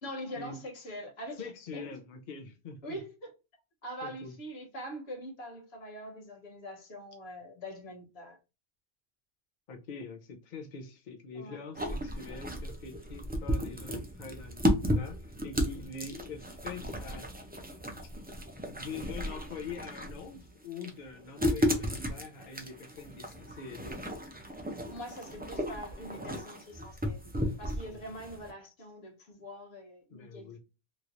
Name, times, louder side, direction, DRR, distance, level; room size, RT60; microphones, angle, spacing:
voice 1, 0.0-1.8 2.8-3.3 3.8-8.4 11.3-11.6 24.9-30.6, equal, 75° left, 1.2 m, -43 dB
voice 2, 1.4-3.0 4.0-4.3 9.7-17.5 18.0-18.1 18.7-24.0 27.9-28.0 30.1-30.6, left 4 dB, 55° left, 0.7 m, -44 dB
sound 1, 11.7-28.5, equal, 15° right, 0.3 m, -34 dB
3.0 x 3.0 x 2.5 m
omnidirectional pair, 1.1 m